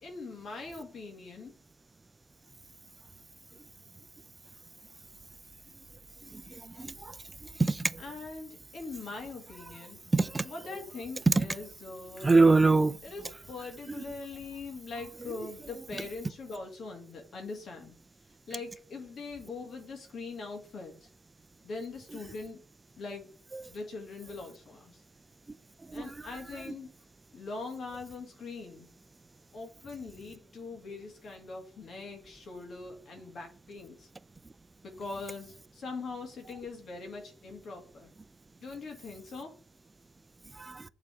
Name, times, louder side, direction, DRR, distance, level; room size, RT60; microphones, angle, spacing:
voice 1, 0.0-1.5 8.0-10.0 10.4-12.3 13.0-18.0 18.5-21.1 21.6-22.6 23.0-23.3 23.6-25.0 25.9-26.9 27.3-28.9 29.5-34.1 34.8-38.1 38.6-39.6, left 3 dB, 55° left, 2.2 m, -42 dB
voice 2, 7.6-7.9 10.1-10.4 11.3-11.4 12.2-13.0 25.9-26.0 40.6-40.8, right 3 dB, 20° right, 0.5 m, -22 dB
7.2 x 4.1 x 6.0 m
cardioid pair, 90°, 0 cm